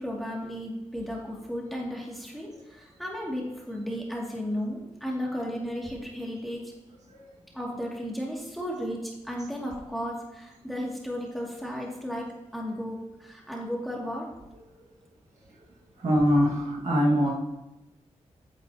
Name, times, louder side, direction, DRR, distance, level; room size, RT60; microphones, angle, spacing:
voice 1, 0.0-6.7 7.5-12.2 12.5-14.3, equal, ahead, -3 dB, 2.6 m, -34 dB
voice 2, 16.0-17.3, equal, 70° right, -4 dB, 2.1 m, -22 dB
9.7 x 7.7 x 3.0 m, 0.96 s
cardioid pair, 60°, 12 cm